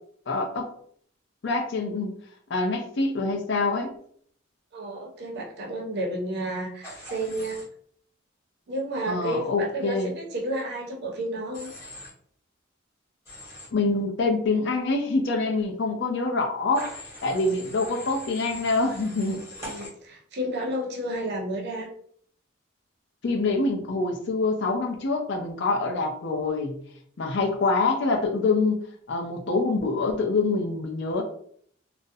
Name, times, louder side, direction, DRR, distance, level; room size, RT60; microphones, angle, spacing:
voice 1, 0.3-0.7 1.4-2.1 2.5-3.9 9.1-10.1 13.7-19.4 23.2-26.8 27.2-28.8 29.1-31.2, left 3 dB, 55° left, 3 dB, 0.5 m, -25 dB
voice 2, 4.7-7.6 8.7-11.7 17.8-17.9 19.6-21.9, right 1 dB, 55° right, 0 dB, 0.6 m, -31 dB
Human voice / Train, 6.8-7.6 11.5-12.1 13.2-13.7 16.7-19.9, left 1 dB, 15° left, 1.0 m, -41 dB
2.4 x 2.0 x 2.6 m, 0.62 s
head